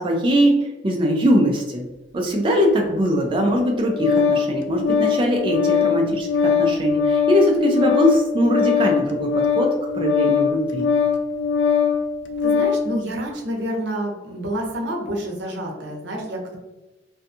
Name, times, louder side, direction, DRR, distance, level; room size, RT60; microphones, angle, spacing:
voice 1, 0.0-1.8 2.1-10.9, equal, 30° right, 0 dB, 0.3 m, -21 dB
Organ, 3.5-12.9, left 6 dB, 85° left, 0.3 m, -21 dB
voice 2, 12.4-16.6, right 1 dB, 85° right, 0 dB, 0.7 m, -28 dB
2.6 x 2.2 x 2.6 m, 1.1 s
head